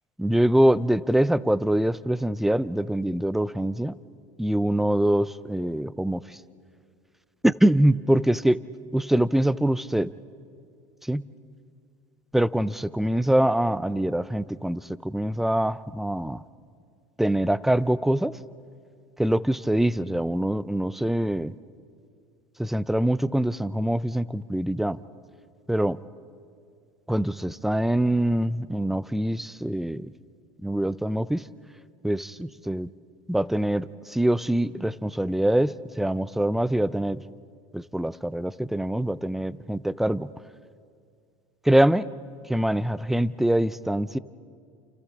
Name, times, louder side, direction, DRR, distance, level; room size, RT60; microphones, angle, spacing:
voice 1, 0.2-4.0 4.4-6.4 7.4-8.6 8.9-10.1 11.0-11.2 12.3-16.4 17.2-18.3 19.2-21.5 22.6-25.0 25.7-26.0 27.1-30.1 30.6-31.5 32.0-32.9 33.3-37.2 37.7-40.3 41.6-42.1 42.5-44.2, right 1 dB, ahead, 18 dB, 0.5 m, -24 dB
30.0 x 28.0 x 3.6 m, 2.2 s
supercardioid pair, 95°, 16 cm